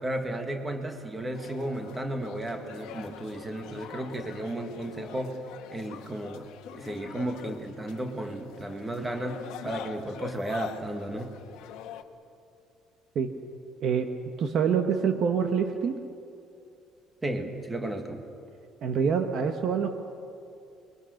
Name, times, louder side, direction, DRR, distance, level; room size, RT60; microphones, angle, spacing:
voice 1, 0.0-5.4 5.7-11.3 17.2-18.2, right 1 dB, 10° right, 5 dB, 1.8 m, -34 dB
sound 1, 1.3-12.0, left 10 dB, 70° left, 1.4 m, -44 dB
voice 2, 14.4-16.0 18.8-19.9, right 6 dB, 40° right, 6 dB, 1.3 m, -26 dB
28.0 x 22.5 x 6.6 m, 2.6 s
cardioid pair, 180°, 0 cm